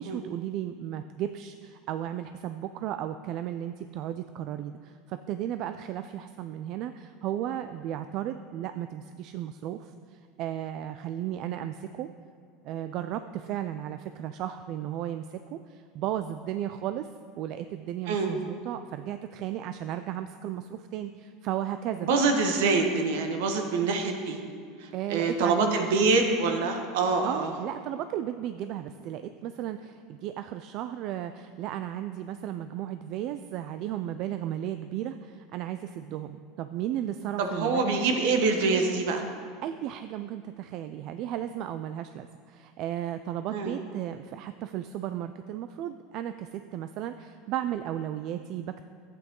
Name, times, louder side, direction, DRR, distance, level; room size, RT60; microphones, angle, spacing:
voice 1, 0.0-12.1 12.6-17.1 17.4-22.2 24.9-26.1 27.2-38.0 39.6-48.8, right 11 dB, 55° right, 10 dB, 0.4 m, -35 dB
voice 2, 22.0-24.4 24.8-27.5 37.4-39.3 43.5-43.8, right 4 dB, 75° right, 4 dB, 1.3 m, -25 dB
11.5 x 8.4 x 3.8 m, 2.2 s
supercardioid pair, 110°, 0 cm